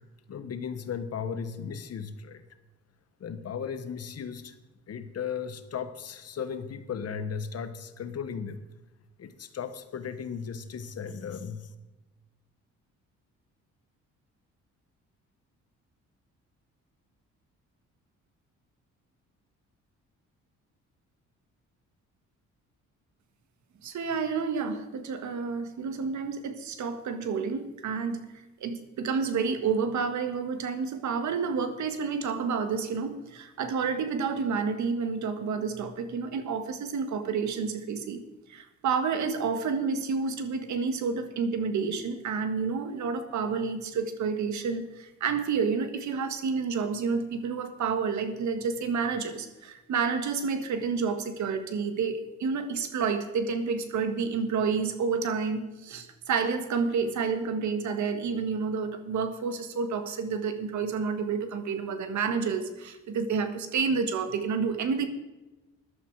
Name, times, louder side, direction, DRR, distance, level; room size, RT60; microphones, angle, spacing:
voice 1, 0.3-2.4 3.2-4.5 4.9-8.6 9.2-11.7, left 7 dB, 55° left, 10 dB, 1.4 m, -36 dB
voice 2, 23.8-38.2 38.5-65.1, right 5 dB, 70° right, 9 dB, 1.7 m, -29 dB
15.0 x 11.5 x 4.8 m, 1.1 s
cardioid pair, 90°, 30 cm